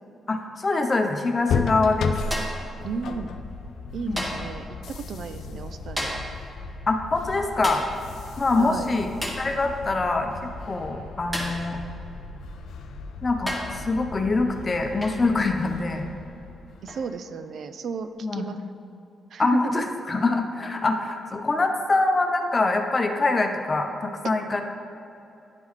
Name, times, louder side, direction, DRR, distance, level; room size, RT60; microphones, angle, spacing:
voice 1, 0.3-2.2 4.1-4.3 6.9-7.8 8.4-9.1 9.4-11.8 13.2-16.1 18.2-18.5 19.4-24.6, left 3 dB, 35° left, 4 dB, 0.6 m, -24 dB
sound 1, 1.5-17.2, left 4 dB, 80° left, 0.3 m, -35 dB
sound 2, 2.3-2.7 4.2-4.6 6.0-6.4 7.6-8.0 9.2-9.5 11.3-11.7 12.7-12.8 13.5-13.8 15.0-15.3 16.9-17.1, equal, 15° right, 1.1 m, -32 dB
voice 2, 2.8-3.3 3.9-6.2 8.6-9.0 16.8-18.6 19.3-19.6, right 5 dB, 70° right, 10 dB, 0.3 m, -34 dB
10.5 x 3.7 x 3.2 m, 2.8 s
cardioid pair, 95°, 0 cm